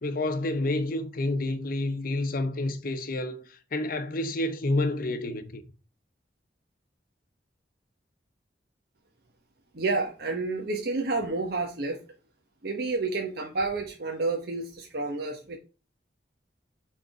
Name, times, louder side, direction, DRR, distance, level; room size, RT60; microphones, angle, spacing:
voice 1, 0.0-3.4 3.7-5.6, left 2 dB, 55° left, 0.8 m, -29 dB
voice 2, 9.7-12.0 12.6-15.6, right 3 dB, 60° right, 1.0 m, -30 dB
6.6 x 3.6 x 4.8 m
head